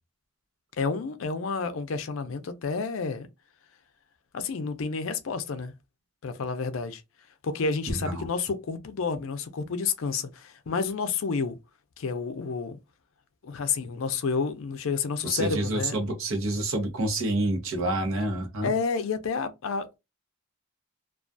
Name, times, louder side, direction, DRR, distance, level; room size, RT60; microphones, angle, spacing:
voice 1, 0.8-3.3 4.3-5.7 6.2-7.0 7.4-11.6 12.0-12.8 13.4-16.0 18.6-20.0, left 5 dB, 70° left, 0.4 m, -30 dB
voice 2, 7.9-8.3 15.2-18.7, right 2 dB, 75° right, 0.8 m, -28 dB
2.3 x 2.3 x 2.5 m
head